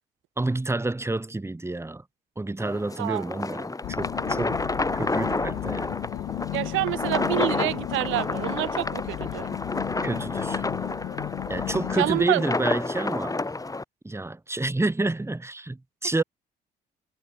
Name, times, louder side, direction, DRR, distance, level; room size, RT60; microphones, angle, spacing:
voice 1, 0.4-2.0 2.4-3.7 4.0-4.6 4.9-5.9 10.0-10.6 11.5-13.4 14.0-16.2, right 2 dB, 15° right, 2.2 m, -29 dB
sound 1, 2.6-13.8, left 2 dB, 15° left, 2.0 m, -30 dB
sound 2, 3.8-12.3, left 16 dB, 80° left, 1.9 m, -34 dB
voice 2, 6.5-9.5 11.9-12.4, right 18 dB, 85° right, 2.7 m, -27 dB
supercardioid pair, 70°, 20 cm